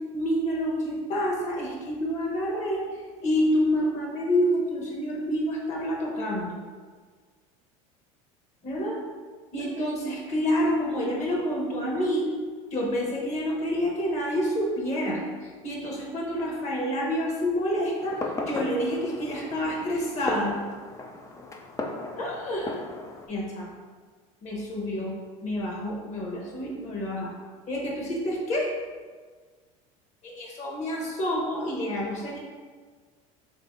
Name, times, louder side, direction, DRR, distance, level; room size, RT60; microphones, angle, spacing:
voice 1, 0.1-6.6 8.6-9.0 9.5-12.3 12.7-20.6 22.2-22.8 23.3-23.7 24.4-25.1 25.4-27.3 27.7-28.7 30.2-32.4, equal, 40° left, -2 dB, 1.0 m, -28 dB
Fireworks, 18.0-23.3, left 2 dB, 15° left, 0.4 m, -36 dB
3.2 x 2.7 x 3.6 m, 1.5 s
supercardioid pair, 100°, 18 cm